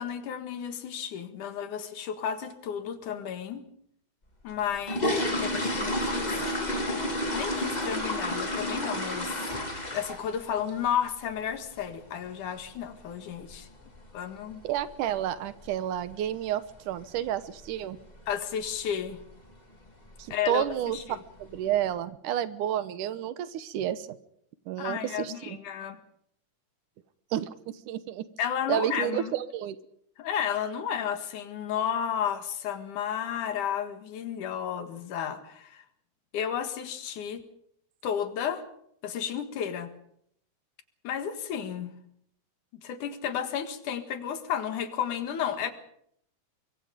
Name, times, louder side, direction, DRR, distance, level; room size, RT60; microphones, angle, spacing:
voice 1, 0.0-3.6 4.4-6.4 7.3-9.3 9.9-13.7 14.1-14.6 18.3-19.2 20.3-21.2 24.8-26.0 28.4-29.3 30.2-35.8 36.3-37.4 38.0-38.6 39.0-39.9 41.0-41.9 42.8-45.7, left 8 dB, 80° left, 9 dB, 3.2 m, -32 dB
sound 1, 4.5-10.4 10.7-11.0 11.3-11.4 11.8-11.9 12.3-12.5 12.8-12.9 13.5-13.6 13.8-14.0 14.5-14.8 15.1-15.2 15.6-15.8 16.1-16.2 16.6-16.7 17.3-17.7 18.0-18.3 18.7-18.8 19.2-19.3 20.1-20.2 20.6-21.1 21.5-21.6, left 1 dB, 15° left, 2.5 m, -30 dB
voice 2, 14.6-18.0 20.2-21.0 21.4-24.1 24.7-25.6 27.3-27.5 27.9-28.2 28.7-29.8, right 11 dB, 85° right, 14 dB, 2.6 m, -30 dB
24.0 x 23.0 x 5.2 m, 0.69 s
omnidirectional pair, 3.5 m